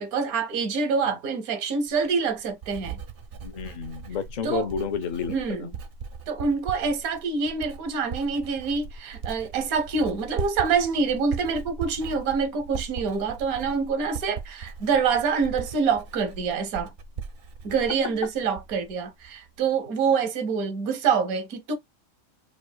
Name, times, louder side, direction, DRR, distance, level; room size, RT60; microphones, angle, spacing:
voice 1, 0.0-3.0 4.4-4.7 5.3-5.7 6.3-16.9 17.6-21.8, right 5 dB, 85° right, 1.3 m, -26 dB
Writing, 1.9-18.9 19.2-19.7, right 6 dB, 60° right, 0.6 m, -39 dB
voice 2, 3.4-5.7, left 6 dB, 60° left, 0.4 m, -31 dB
5.0 x 2.3 x 2.2 m
omnidirectional pair, 1.5 m